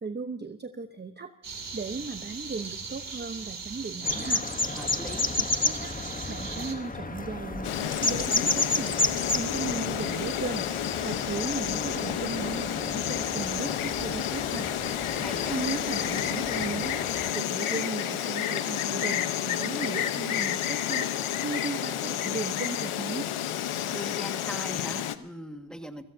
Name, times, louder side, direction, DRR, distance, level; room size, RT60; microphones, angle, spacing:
voice 1, 0.0-1.3 1.7-4.4 5.4-5.9 6.3-8.9 9.3-10.7 11.0-14.7 15.5-17.0 17.3-21.1 21.4-23.3, right 4 dB, 20° right, 7 dB, 0.9 m, -36 dB
sound 1, 1.4-6.7, right 5 dB, 45° right, 2.8 m, -39 dB
sound 2, 4.0-17.3, left 3 dB, 15° left, 1.1 m, -32 dB
voice 2, 4.7-5.3 15.2-15.6 23.9-26.0, equal, ahead, 5 dB, 1.8 m, -40 dB
Insect, 7.6-25.2, left 11 dB, 80° left, 1.1 m, -30 dB
28.5 x 16.5 x 2.8 m, 0.80 s
cardioid pair, 90°, 48 cm